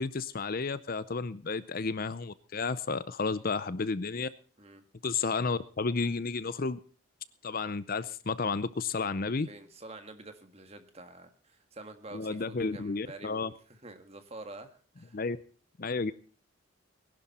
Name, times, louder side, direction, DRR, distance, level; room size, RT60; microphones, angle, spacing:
voice 1, 0.0-4.3 5.0-6.8 7.4-9.5 12.1-13.5 15.1-15.4 15.8-16.1, left 4 dB, 45° left, 16 dB, 0.6 m, -32 dB
voice 2, 9.5-15.2, right 2 dB, 30° right, 7 dB, 1.7 m, -48 dB
20.0 x 11.5 x 4.3 m, 0.41 s
head